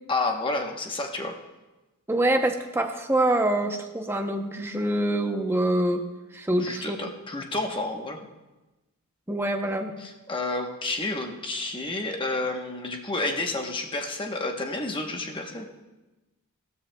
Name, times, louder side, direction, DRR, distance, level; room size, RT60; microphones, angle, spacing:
voice 1, 0.1-1.3 6.6-8.2 10.0-15.7, left 2 dB, 20° left, 3 dB, 0.9 m, -30 dB
voice 2, 2.1-6.0 6.3-7.1 9.3-9.9, right 1 dB, 10° right, 5 dB, 0.6 m, -25 dB
15.5 x 13.0 x 2.2 m, 1.1 s
head